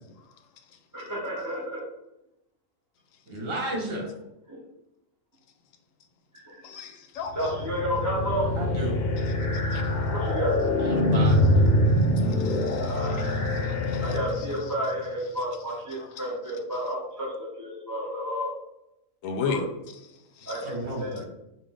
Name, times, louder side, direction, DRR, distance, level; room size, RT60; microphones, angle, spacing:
voice 1, 0.9-1.8 3.9-4.1 4.5-4.6 6.4-6.5 7.3-8.5 10.1-10.5 12.5-13.2 14.0-17.3 17.6-18.5 19.4-19.6 20.5-21.2, equal, 15° right, -7 dB, 0.8 m, -31 dB
voice 2, 3.3-4.1 8.6-9.0 10.8-11.4 20.6-21.2, right 1 dB, 45° right, -1 dB, 1.4 m, -32 dB
voice 3, 6.6-7.6 9.2-10.0 11.3-11.4 11.8-14.7 15.9-16.8 19.2-19.7 20.1-20.7 21.0-21.1, left 5 dB, 80° left, 6 dB, 1.0 m, -37 dB
sound 1, 7.3-14.7, left 1 dB, 55° left, 0.9 m, -24 dB
5.1 x 2.6 x 3.6 m, 0.87 s
omnidirectional pair, 1.4 m